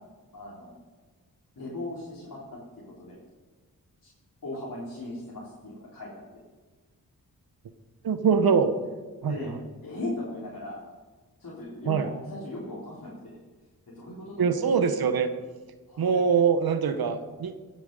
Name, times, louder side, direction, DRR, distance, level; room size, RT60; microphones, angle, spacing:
voice 1, 0.3-0.7 1.6-2.6 3.0-3.2 4.0-4.1 4.4-6.4 9.3-9.6 9.8-10.8 11.4-13.4 13.9-14.7 15.9-16.2, left 1 dB, 60° left, -7 dB, 3.8 m, -38 dB
voice 2, 8.0-8.8 9.2-9.3 11.9-12.1 14.4-15.3 16.0-17.6, right 6 dB, 75° right, 10 dB, 1.0 m, -23 dB
16.5 x 8.9 x 5.4 m, 1.3 s
cardioid pair, 45°, 37 cm